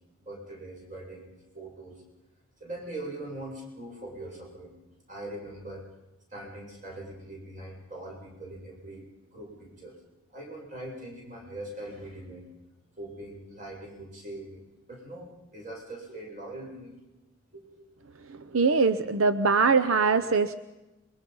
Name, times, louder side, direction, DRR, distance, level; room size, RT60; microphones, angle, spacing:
voice 1, 0.2-2.0 2.6-4.8 5.1-6.0 6.3-9.0 9.3-10.0 10.3-12.5 13.0-17.0 17.5-17.9, right 1 dB, 35° right, -2 dB, 7.3 m, -42 dB
voice 2, 18.3-20.5, right 4 dB, 85° right, 11 dB, 0.8 m, -23 dB
27.0 x 22.5 x 5.5 m, 1.0 s
head